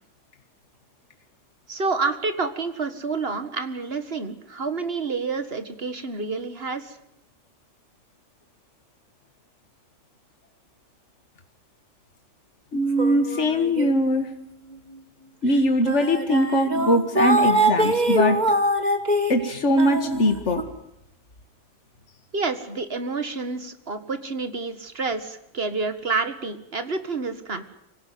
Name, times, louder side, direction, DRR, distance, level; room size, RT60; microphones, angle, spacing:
voice 1, 1.7-7.0 22.3-27.6, right 4 dB, 50° right, 10 dB, 2.1 m, -28 dB
voice 2, 12.7-14.3 15.4-18.4 19.3-20.6, left 1 dB, 70° left, 7 dB, 2.1 m, -21 dB
sound 1, 13.0-14.3 14.7-14.9 15.6-15.7 15.9-20.6, right 1 dB, 35° right, 2.1 m, -23 dB
25.5 x 17.0 x 9.5 m, 0.78 s
omnidirectional pair, 1.3 m